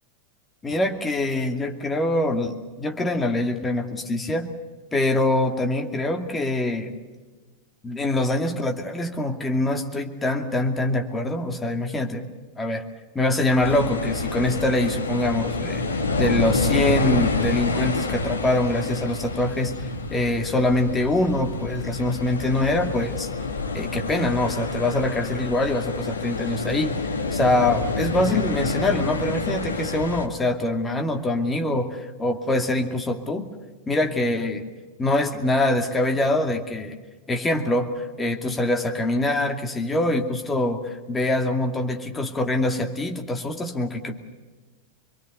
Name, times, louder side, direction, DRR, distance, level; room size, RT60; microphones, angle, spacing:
voice 1, 0.6-4.5 4.9-6.9 7.8-12.3 12.6-12.8 13.1-23.3 23.7-27.0 27.3-33.5 33.9-34.7 35.0-37.0 37.3-44.2, left 2 dB, 15° left, 4 dB, 2.5 m, -24 dB
sound 1, 13.6-30.3, left 3 dB, 75° left, 1.8 m, -28 dB
26.0 x 22.5 x 6.8 m, 1.3 s
figure-of-eight pair, 90°, 0 cm